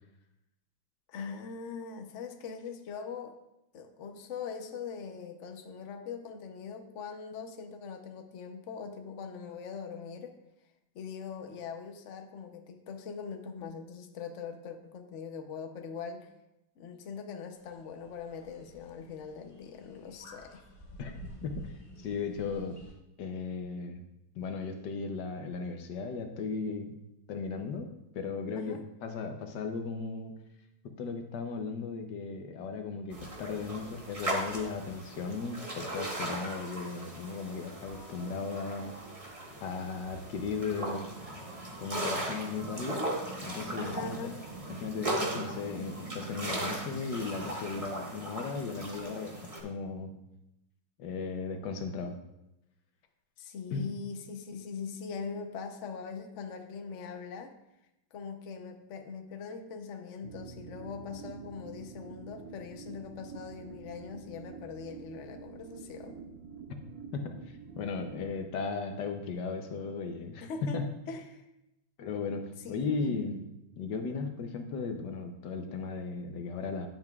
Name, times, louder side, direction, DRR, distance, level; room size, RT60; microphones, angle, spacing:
voice 1, 1.1-3.4 3.7-10.4 10.9-16.3 16.8-20.6 28.6-28.8 43.8-44.4 53.4-57.5 58.1-66.2 70.4-71.5 72.6-73.2, left 5 dB, 85° left, 5 dB, 0.6 m, -42 dB
sound 1, 17.6-22.9, right 1 dB, 30° left, 0.5 m, -50 dB
voice 2, 22.0-22.8 23.2-24.0 24.4-27.0 27.3-27.9 28.1-30.3 30.8-38.9 39.6-41.1 41.8-43.0 43.4-44.3 44.8-50.1 51.0-52.2 53.7-53.8 67.1-67.4 67.8-70.9 72.0-73.4 73.8-76.9, left 4 dB, 65° left, 5 dB, 1.2 m, -36 dB
sound 2, 33.1-49.6, right 1 dB, 25° right, 0.9 m, -38 dB
sound 3, 60.2-68.3, right 6 dB, 80° right, 1.6 m, -47 dB
10.5 x 7.7 x 2.4 m, 0.89 s
omnidirectional pair, 2.4 m